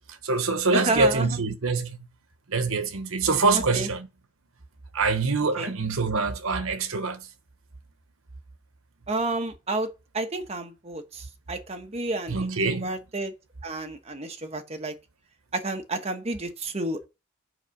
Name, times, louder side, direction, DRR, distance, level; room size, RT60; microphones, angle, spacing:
voice 1, 0.1-2.0 2.5-4.1 4.9-7.3 12.3-13.0, right 3 dB, 75° right, 1.1 m, -25 dB
voice 2, 0.7-1.3 3.5-3.9 5.6-5.7 9.1-13.3 13.6-14.9 15.5-17.1, right 2 dB, 30° right, 1.1 m, -31 dB
8.0 x 4.9 x 5.9 m
head